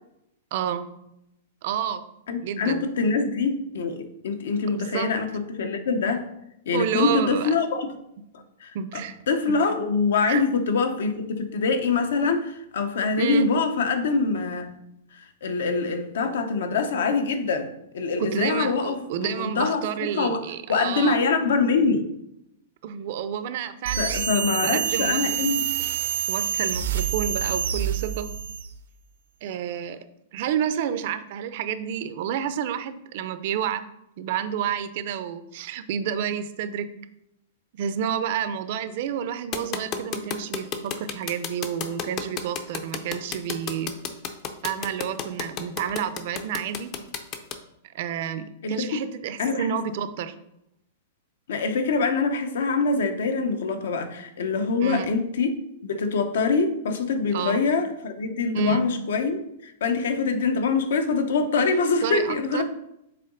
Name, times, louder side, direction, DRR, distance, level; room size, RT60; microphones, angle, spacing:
voice 1, 0.5-0.9 1.6-2.0 2.4-2.9 4.7-5.1 6.7-7.5 8.7-9.2 9.5-9.6 10.3-10.4 13.2-13.5 16.7-16.8 18.2-21.2 22.8-25.2 26.3-28.3 29.4-30.0 30.3-33.8 34.2-36.9 37.7-43.9 44.6-46.9 47.9-50.3 54.8-55.1 57.3-57.6 58.5-58.9 62.0-62.6, right 8 dB, 45° right, 12 dB, 0.5 m, -29 dB
voice 2, 2.3-6.3 6.7-7.9 8.6-14.7 15.1-17.7 17.9-20.4 20.7-22.1 24.0-25.7 48.6-49.0 49.4-49.8 51.5-55.5 55.8-62.6, left 4 dB, 75° left, 7 dB, 0.9 m, -24 dB
sound 1, 23.8-28.7, right 9 dB, 85° right, 0.8 m, -27 dB
sound 2, 39.5-47.5, left 7 dB, 25° left, 0.5 m, -31 dB
6.6 x 3.9 x 3.9 m, 0.81 s
supercardioid pair, 165°, 0 cm